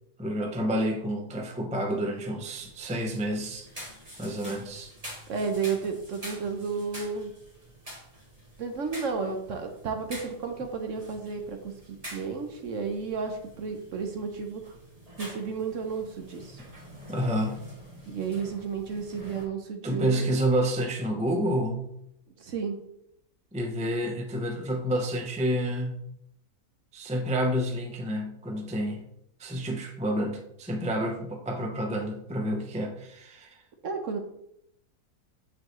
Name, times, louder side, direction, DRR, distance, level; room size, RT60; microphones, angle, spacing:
voice 1, 0.2-3.7 4.2-4.9 17.1-17.6 19.8-22.0 23.5-26.1 26.9-29.0 29.4-33.5, equal, 10° right, 2 dB, 0.4 m, -29 dB
sound 1, 2.6-19.4, equal, 25° right, 1.8 m, -47 dB
voice 2, 5.3-7.3 8.6-14.7 15.2-16.6 18.1-20.3 22.4-22.8 33.8-34.2, right 5 dB, 55° right, 5 dB, 1.1 m, -32 dB
9.0 x 4.7 x 3.1 m, 0.76 s
omnidirectional pair, 1.7 m